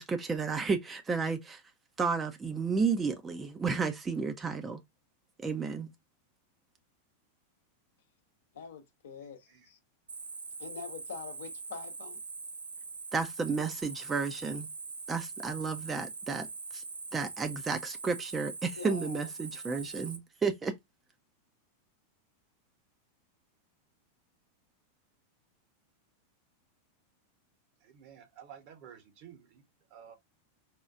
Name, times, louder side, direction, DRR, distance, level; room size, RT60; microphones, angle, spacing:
voice 1, 0.0-1.6 2.0-4.8 5.4-5.9 13.1-14.7 15.1-16.5 16.7-16.8 17.1-20.7, right 5 dB, 15° right, 0.5 m, -32 dB
voice 2, 8.5-9.8 10.6-12.2 18.8-19.3, left 6 dB, 60° left, 0.7 m, -44 dB
Cricket, 10.1-20.2, right 4 dB, 75° right, 0.4 m, -43 dB
voice 3, 27.8-29.6 29.9-30.1, right 8 dB, 45° right, 0.9 m, -52 dB
4.3 x 2.3 x 2.3 m
figure-of-eight pair, 90°, 0 cm